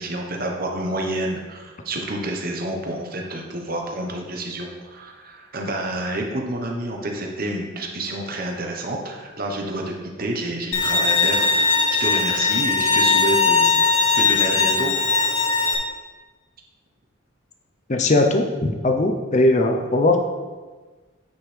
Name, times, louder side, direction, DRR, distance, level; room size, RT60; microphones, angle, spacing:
voice 1, 0.0-9.9 10.2-13.9 14.2-14.9, right 1 dB, 45° right, 1 dB, 1.0 m, -29 dB
Bowed string instrument, 10.7-15.8, left 4 dB, 70° left, 1.0 m, -19 dB
voice 2, 17.9-20.2, left 2 dB, 35° left, 4 dB, 0.6 m, -19 dB
9.2 x 5.1 x 3.3 m, 1.4 s
head